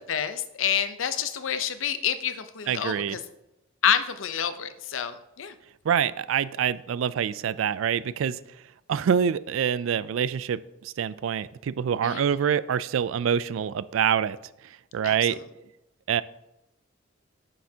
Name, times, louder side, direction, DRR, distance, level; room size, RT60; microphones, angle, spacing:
voice 1, 0.1-3.2 3.8-5.5 12.0-12.3 15.0-15.2, left 8 dB, 80° left, 11 dB, 0.6 m, -28 dB
voice 2, 2.7-3.2 5.9-8.4 8.9-14.4 14.9-15.4 16.1-16.2, right 8 dB, 85° right, 17 dB, 0.3 m, -26 dB
9.4 x 6.8 x 2.8 m, 0.90 s
head